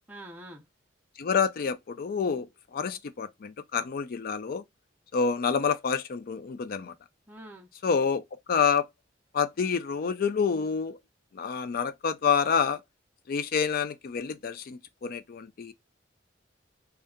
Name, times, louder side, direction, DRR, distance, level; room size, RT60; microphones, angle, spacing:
voice 1, 0.1-0.6 7.3-7.7, right 1 dB, 10° right, 0.5 m, -45 dB
voice 2, 1.2-4.6 5.1-6.9 7.8-8.2 8.5-8.9 9.3-11.0 11.3-12.8 13.3-15.7, left 6 dB, 55° left, 0.4 m, -28 dB
2.7 x 2.3 x 3.5 m
head